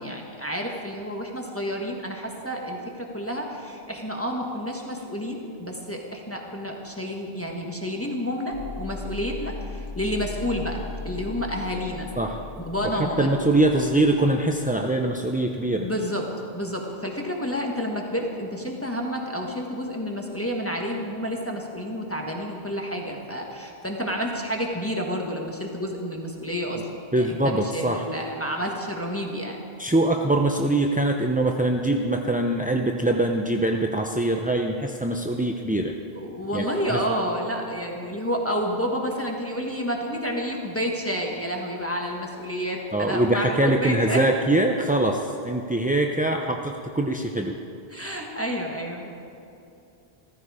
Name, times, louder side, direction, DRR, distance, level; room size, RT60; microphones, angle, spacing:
voice 1, 0.0-12.1 12.6-13.3 15.7-16.2 16.5-29.6 36.1-44.2 47.9-49.1, equal, 15° left, 0 dB, 1.4 m, -30 dB
sound 1, 8.5-16.2, left 4 dB, 65° left, 1.3 m, -39 dB
voice 2, 12.8-15.9 27.1-28.0 29.8-35.9 36.5-36.7 36.9-37.0 42.9-47.6, right 1 dB, 10° right, 2 dB, 0.4 m, -23 dB
15.5 x 14.0 x 4.9 m, 2.7 s
omnidirectional pair, 1.1 m